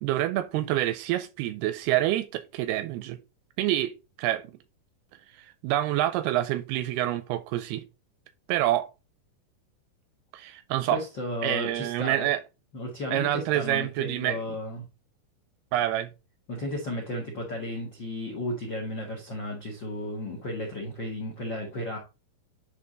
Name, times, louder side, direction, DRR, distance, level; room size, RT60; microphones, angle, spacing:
voice 1, 0.0-3.2 3.6-4.4 5.4-7.8 8.5-8.9 10.3-11.0 11.4-12.4 13.1-14.6 15.7-16.1, right 14 dB, 85° right, 2.3 m, -27 dB
voice 2, 10.9-12.3 12.7-14.8 16.5-22.0, left 1 dB, 75° left, 1.0 m, -34 dB
10.5 x 3.6 x 3.8 m
omnidirectional pair, 4.9 m